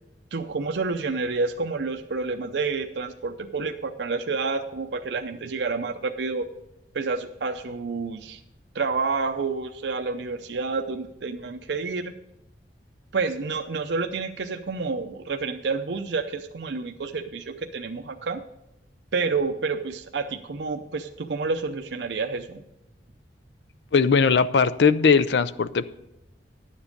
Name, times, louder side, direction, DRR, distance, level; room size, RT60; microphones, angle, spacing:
voice 1, 0.3-6.5 6.9-8.4 8.7-12.1 13.1-18.4 19.1-22.6, right 4 dB, 70° right, 6 dB, 0.6 m, -29 dB
voice 2, 23.9-25.9, left 5 dB, 70° left, 15 dB, 0.5 m, -19 dB
11.5 x 7.2 x 5.2 m, 0.87 s
head